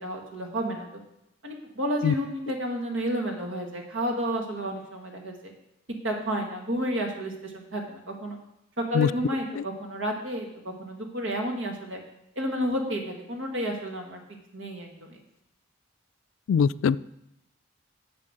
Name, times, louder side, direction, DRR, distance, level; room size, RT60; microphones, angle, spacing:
voice 1, 0.0-0.9 1.4-5.5 6.0-8.4 8.8-12.0 12.4-14.2 14.5-15.2, equal, 75° right, 2 dB, 1.9 m, -31 dB
voice 2, 16.5-17.0, left 6 dB, 75° left, 18 dB, 0.3 m, -22 dB
7.5 x 7.1 x 6.6 m, 0.83 s
head